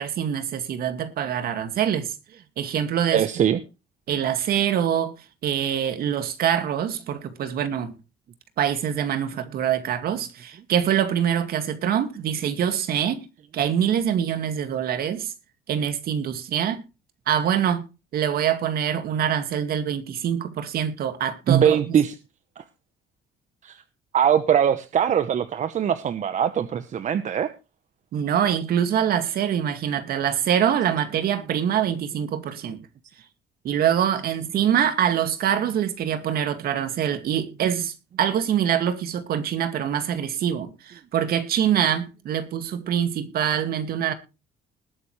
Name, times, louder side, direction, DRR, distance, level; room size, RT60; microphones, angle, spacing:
voice 1, 0.0-2.1 2.6-3.2 4.1-5.1 5.4-7.9 8.6-13.3 13.5-15.3 15.7-16.8 17.3-17.8 18.1-22.0 28.1-32.8 33.6-44.1, right 9 dB, 65° right, 2.2 m, -24 dB
voice 2, 3.1-3.6 21.5-22.1 22.6-22.7 23.6-23.8 24.1-27.5, right 9 dB, 45° right, 1.0 m, -21 dB
20.5 x 8.5 x 3.2 m
cardioid pair, 110°, 17 cm